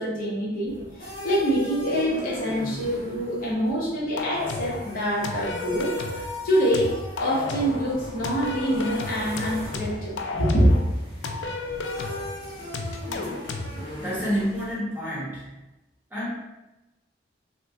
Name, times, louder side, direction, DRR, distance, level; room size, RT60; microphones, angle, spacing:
voice 1, 0.0-10.7, equal, 50° left, -7 dB, 0.9 m, -25 dB
sound 1, 0.7-14.7, left 1 dB, 30° left, 1.1 m, -39 dB
sound 2, 4.2-4.8 5.2-6.3 6.7-7.8 8.2-10.8 11.2-12.3 12.7-13.7, left 3 dB, 80° left, 0.4 m, -32 dB
voice 2, 14.0-15.5 16.1-16.3, equal, 10° right, -9 dB, 1.1 m, -28 dB
3.6 x 2.1 x 2.7 m, 1.0 s
head